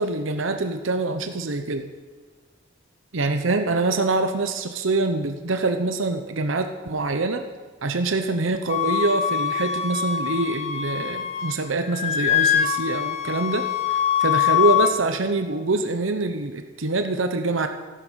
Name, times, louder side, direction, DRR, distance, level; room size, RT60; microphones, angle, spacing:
voice 1, 0.0-1.9 3.1-7.4 7.8-17.7, right 3 dB, 80° right, 7 dB, 0.9 m, -25 dB
Wind instrument woodwind instrument, 8.7-11.6 11.9-14.9, left 10 dB, 35° left, 0.8 m, -23 dB
14.0 x 12.5 x 6.3 m, 1.5 s
head